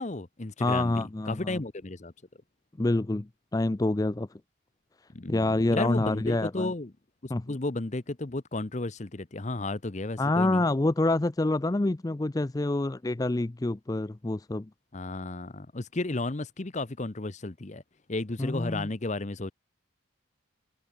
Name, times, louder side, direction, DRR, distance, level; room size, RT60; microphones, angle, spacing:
voice 1, 0.0-2.1 5.1-6.9 7.2-10.6 14.9-17.8 18.1-19.5, left 2 dB, 35° left, 0.8 m, -33 dB
voice 2, 0.6-1.6 2.8-4.3 5.3-6.7 7.3-7.4 10.2-14.7 18.4-18.9, left 2 dB, 15° left, 0.4 m, -27 dB
head